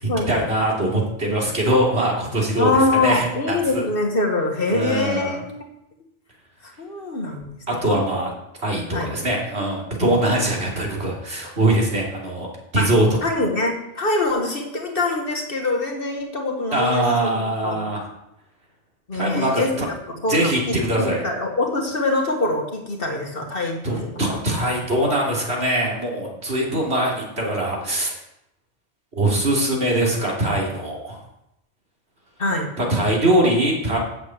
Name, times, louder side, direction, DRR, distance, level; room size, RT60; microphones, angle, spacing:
voice 1, 0.0-3.8 4.7-5.4 7.7-8.3 8.6-12.5 12.7-13.2 16.7-18.1 19.1-19.9 20.3-21.2 23.8-28.1 29.1-31.2 32.8-34.0, right 1 dB, 60° right, -3 dB, 3.3 m, -22 dB
voice 2, 2.6-5.7 6.6-7.6 7.9-8.2 8.9-9.1 12.8-12.9 13.2-17.9 19.1-19.7 20.2-24.2 32.4-32.7, left 2 dB, 50° left, 3 dB, 1.6 m, -24 dB
7.8 x 7.2 x 8.0 m, 0.85 s
omnidirectional pair, 1.2 m